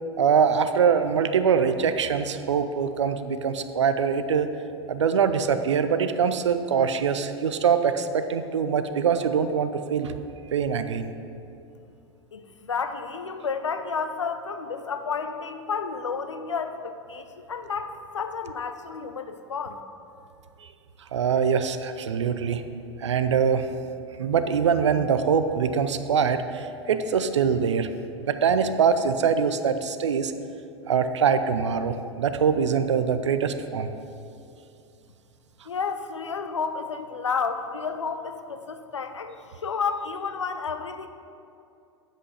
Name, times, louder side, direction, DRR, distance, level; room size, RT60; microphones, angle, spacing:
voice 1, 0.2-4.5 4.9-10.2 10.5-11.1 20.6-20.7 21.1-22.6 23.0-23.7 24.2-27.9 28.2-30.3 30.9-33.9, right 6 dB, 80° right, 10 dB, 0.5 m, -23 dB
voice 2, 12.3-19.8 35.7-41.1, left 5 dB, 85° left, 9 dB, 0.5 m, -31 dB
8.5 x 5.2 x 5.5 m, 2.7 s
figure-of-eight pair, 85°, 15 cm